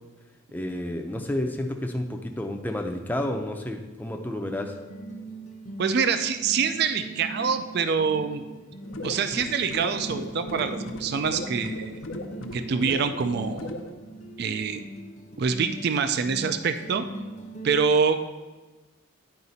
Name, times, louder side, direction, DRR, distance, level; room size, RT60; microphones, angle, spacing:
voice 1, 0.5-4.8, left 1 dB, 10° left, 3 dB, 0.5 m, -30 dB
sound 1, 4.5-17.8, right 2 dB, 35° left, 0.7 m, -41 dB
voice 2, 5.8-8.4 9.0-12.0 12.5-13.7 14.4-14.8 15.4-17.0 17.6-18.2, right 5 dB, 50° right, 10 dB, 0.4 m, -25 dB
sound 2, 8.8-13.9, left 1 dB, 75° left, 0.6 m, -37 dB
9.5 x 4.8 x 4.1 m, 1.2 s
head